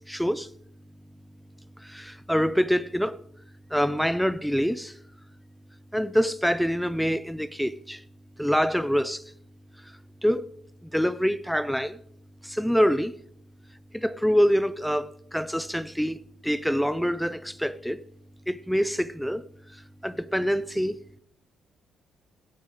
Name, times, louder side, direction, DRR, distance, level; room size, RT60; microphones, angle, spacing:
voice 1, 0.1-0.5 1.8-3.2 3.7-4.9 5.9-8.0 8.4-9.2 10.2-10.5 10.8-12.0 12.4-13.1 13.9-18.0 18.5-19.4 20.0-21.0, equal, ahead, 0.5 m, -25 dB
17.0 x 8.5 x 4.8 m
cardioid pair, 90°, 0 cm